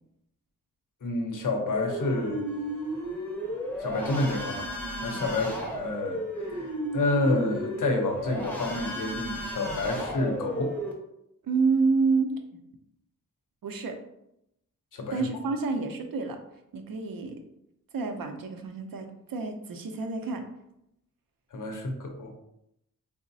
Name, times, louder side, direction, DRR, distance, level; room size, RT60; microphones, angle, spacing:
voice 1, 1.0-2.5 3.8-4.7 5.0-10.7 14.9-15.3 21.5-22.3, left 2 dB, 65° left, 2 dB, 0.6 m, -29 dB
sound 1, 1.7-10.9, equal, 5° left, 0.6 m, -34 dB
voice 2, 11.4-12.3 13.6-14.0 15.1-16.4 16.7-17.4 17.9-20.5, right 4 dB, 85° right, 5 dB, 0.5 m, -28 dB
3.8 x 2.0 x 2.6 m, 0.81 s
wide cardioid pair, 105°, 33 cm